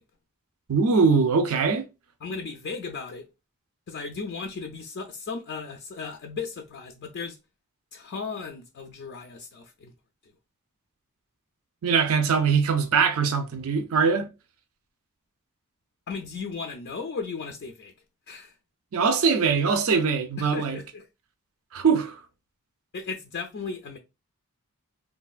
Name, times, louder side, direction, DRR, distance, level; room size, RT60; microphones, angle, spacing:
voice 1, 0.7-1.9 11.8-14.3 18.9-20.8 21.7-22.2, right 5 dB, 70° right, 0.5 m, -22 dB
voice 2, 2.2-3.3 3.9-7.4 7.9-9.9 10.2-10.3 16.1-17.9 18.3-18.6 20.4-21.1 22.9-24.0, left 4 dB, 50° left, 0.4 m, -36 dB
3.1 x 2.2 x 2.4 m
head